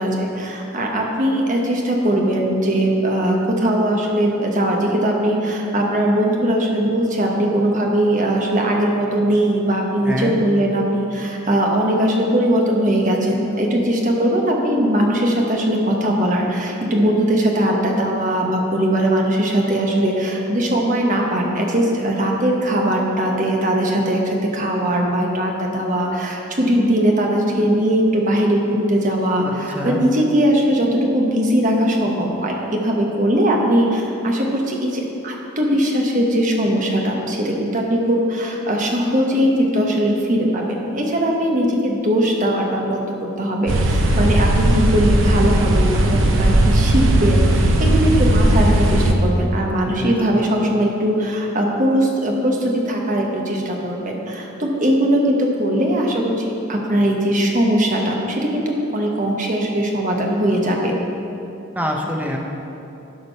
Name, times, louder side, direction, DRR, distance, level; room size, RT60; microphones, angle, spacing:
voice 1, 0.0-43.1 43.4-61.0, right 1 dB, 40° right, 0 dB, 1.2 m, -20 dB
voice 2, 29.4-30.0 49.8-50.4 61.7-62.4, equal, 10° right, 0 dB, 0.8 m, -26 dB
sound 1, 43.7-49.1, right 1 dB, 70° right, 0.8 m, -16 dB
12.0 x 5.1 x 5.5 m, 2.9 s
head